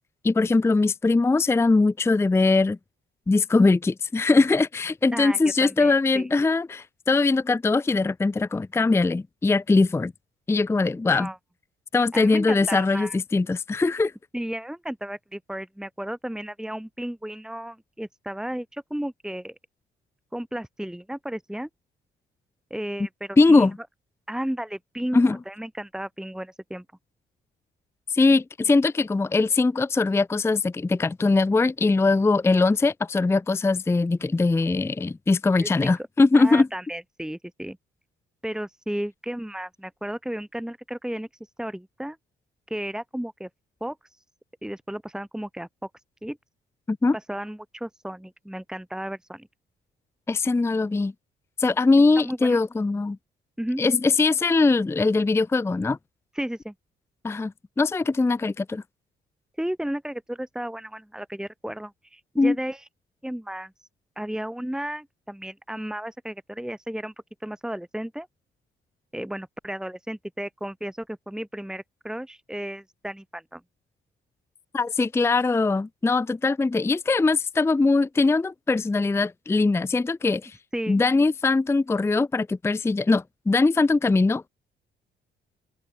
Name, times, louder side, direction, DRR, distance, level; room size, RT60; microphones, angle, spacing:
voice 1, 0.2-2.8 3.3-10.1 10.5-11.3 11.9-14.1 23.4-23.8 25.1-25.4 28.1-36.7 46.9-47.2 50.3-51.1 51.6-53.2 53.8-56.0 57.2-58.8 62.4-62.6 74.7-80.6 80.9-84.5, left 3 dB, 15° left, 0.5 m, -21 dB
voice 2, 5.1-6.3 11.1-11.4 12.1-13.2 14.3-19.6 20.3-21.7 22.7-23.7 24.3-26.8 35.6-35.9 36.3-37.8 38.4-41.3 41.6-42.2 42.7-43.5 43.8-44.0 44.6-45.9 46.2-46.4 47.3-49.5 52.2-52.6 53.6-53.8 56.3-56.7 59.6-62.8 63.2-63.7 64.2-67.1 67.4-68.3 69.1-73.6 80.7-81.0, right 1 dB, 5° right, 2.3 m, -33 dB
open air
cardioid pair, 90°, 20 cm